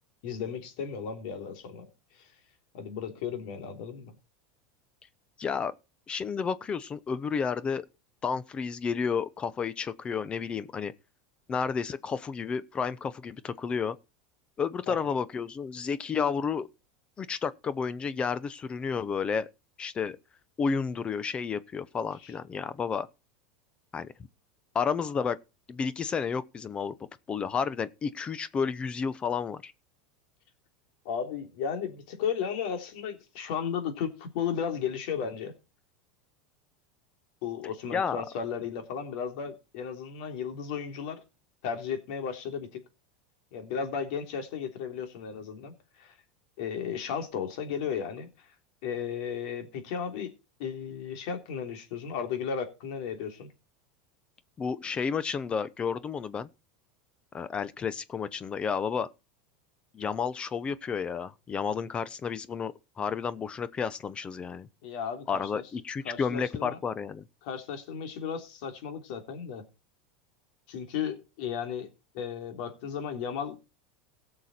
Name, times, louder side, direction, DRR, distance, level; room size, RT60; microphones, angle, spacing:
voice 1, 0.2-1.9 2.2-2.3 2.7-4.1 14.9-15.2 22.2-22.3 31.1-35.5 37.4-41.2 41.6-42.8 43.5-46.1 46.6-48.5 48.8-50.3 50.6-53.5 64.8-65.6 66.1-66.8 67.4-69.6 70.7-71.9 72.1-73.6, left 7 dB, 65° left, 3.4 m, -34 dB
voice 2, 5.4-5.7 6.1-7.9 8.2-10.9 11.5-14.0 14.6-16.7 17.2-19.5 19.8-20.2 20.6-23.1 23.9-24.1 24.7-25.4 25.7-26.9 27.3-29.7 37.9-38.2 54.6-56.5 57.3-59.1 59.9-64.7 65.3-67.2, left 6 dB, 25° left, 0.8 m, -31 dB
17.5 x 6.8 x 4.4 m
supercardioid pair, 130°, 4 cm